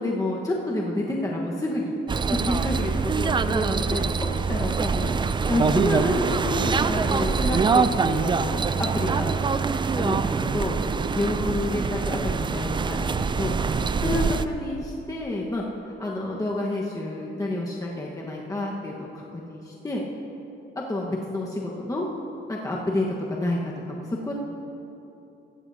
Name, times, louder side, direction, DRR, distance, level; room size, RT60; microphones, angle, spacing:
voice 1, 0.0-1.9 2.4-5.1 5.5-9.3 9.9-10.7 11.1-13.5 14.0-20.0 20.7-22.0 22.5-24.3, left 1 dB, 15° left, -3 dB, 1.3 m, -29 dB
sound 1, 2.1-14.4, right 5 dB, 25° right, 0.4 m, -24 dB
15.0 x 14.5 x 2.8 m, 2.9 s
cardioid pair, 90°, 20 cm